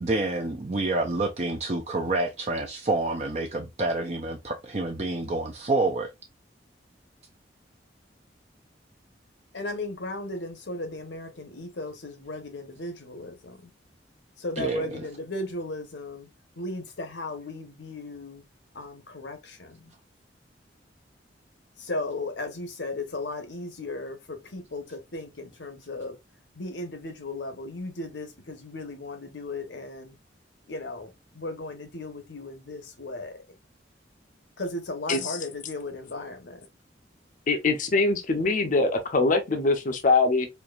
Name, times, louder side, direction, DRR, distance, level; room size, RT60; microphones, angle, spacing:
voice 1, 0.0-6.1 14.6-15.0, right 2 dB, 35° right, 0.5 m, -28 dB
voice 2, 9.5-13.6 14.4-16.3 16.6-18.4 18.7-19.8 21.8-26.2 26.6-30.2 30.7-33.4 34.6-36.6, left 2 dB, 75° left, 1.0 m, -36 dB
voice 3, 37.5-40.5, left 3 dB, 45° left, 0.6 m, -23 dB
4.5 x 2.6 x 2.4 m
head